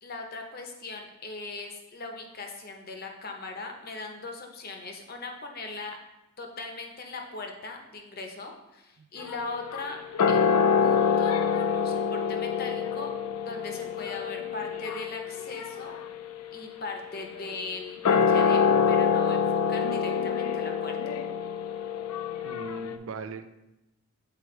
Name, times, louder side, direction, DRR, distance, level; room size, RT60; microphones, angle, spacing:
voice 1, 0.0-6.0 6.4-10.0 10.3-13.1 13.4-15.9 16.5-21.0, left 3 dB, 40° left, 3 dB, 0.7 m, -39 dB
sound 1, 9.2-23.0, left 6 dB, 90° left, 0.4 m, -26 dB
voice 2, 22.4-23.6, right 4 dB, 65° right, 11 dB, 0.4 m, -39 dB
7.6 x 4.4 x 3.1 m, 0.97 s
head